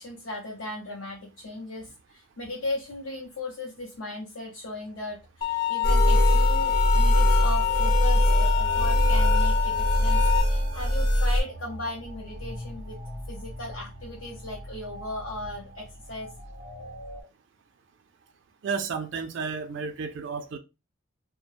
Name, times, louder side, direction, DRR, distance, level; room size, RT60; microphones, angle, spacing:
voice 1, 0.0-13.0 13.3-16.3, left 2 dB, 70° left, 0.6 m, -37 dB
sound 1, 5.4-10.4, left 11 dB, 25° left, 0.3 m, -27 dB
sound 2, 5.8-11.4, equal, 40° left, 0.8 m, -22 dB
sound 3, 6.9-17.2, right 1 dB, 90° left, 1.0 m, -41 dB
voice 2, 18.6-20.6, right 5 dB, 60° right, 0.3 m, -32 dB
2.3 x 2.1 x 2.9 m
head